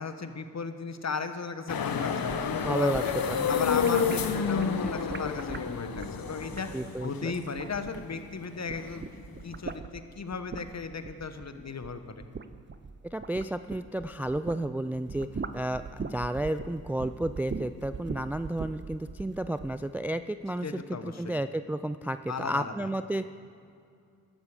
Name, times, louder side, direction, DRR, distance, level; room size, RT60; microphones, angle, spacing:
voice 1, 0.0-3.1 3.5-9.0 9.4-12.2 20.6-21.4 22.3-22.9, left 4 dB, 40° left, 9 dB, 1.2 m, -36 dB
sound 1, 1.7-9.7, left 6 dB, 60° left, 1.1 m, -30 dB
sound 2, 2.2-8.3 8.6-14.6 14.9-19.8, right 5 dB, 30° right, 0.8 m, -41 dB
voice 2, 2.6-3.5 6.7-7.3 13.1-23.2, right 1 dB, 5° right, 11 dB, 0.3 m, -32 dB
14.0 x 11.5 x 5.0 m, 2.4 s
supercardioid pair, 40°, 39 cm